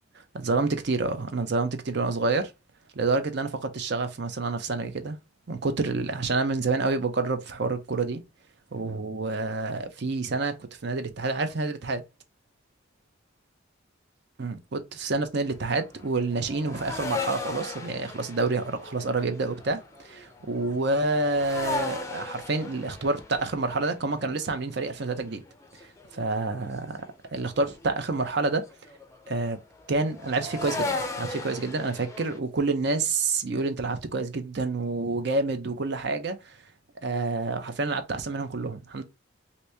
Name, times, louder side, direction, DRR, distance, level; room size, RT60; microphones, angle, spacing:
voice 1, 0.3-2.5 3.0-5.2 5.5-8.2 8.7-10.5 10.8-12.0 14.4-19.8 20.0-25.4 26.1-27.0 27.3-28.6 29.3-29.6 29.9-36.6 37.0-39.0, right 3 dB, 60° right, 0.6 m, -28 dB
sound 1, 15.4-26.7 27.0-32.4, left 3 dB, 15° left, 0.5 m, -37 dB
2.9 x 2.7 x 3.2 m
head